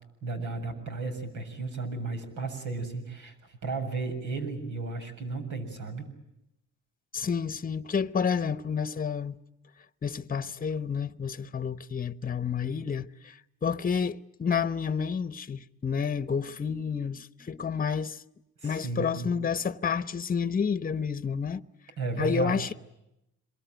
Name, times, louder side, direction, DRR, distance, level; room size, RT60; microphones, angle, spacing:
voice 1, 0.2-6.1 18.6-19.4 22.0-22.6, right 3 dB, 75° right, 7.1 m, -34 dB
voice 2, 7.1-9.4 10.0-18.2 18.6-21.6 22.2-22.7, left 6 dB, 30° left, 1.0 m, -30 dB
26.5 x 23.0 x 9.3 m
cardioid pair, 90°, 30 cm